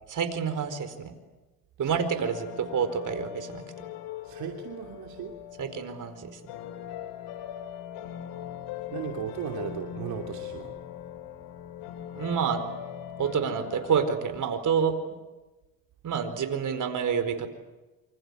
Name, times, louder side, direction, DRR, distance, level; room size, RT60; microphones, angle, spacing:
voice 1, 0.1-1.1 1.8-3.6 5.6-6.3 12.1-12.6 13.2-14.9 16.0-17.5, right 7 dB, 55° right, 10 dB, 4.7 m, -28 dB
voice 2, 1.8-2.3 4.2-5.3 8.9-10.8, right 9 dB, 70° right, 2 dB, 2.9 m, -37 dB
sound 1, 2.2-14.1, left 10 dB, 85° left, 3.0 m, -40 dB
27.5 x 25.5 x 8.3 m, 1.1 s
supercardioid pair, 80°, 38 cm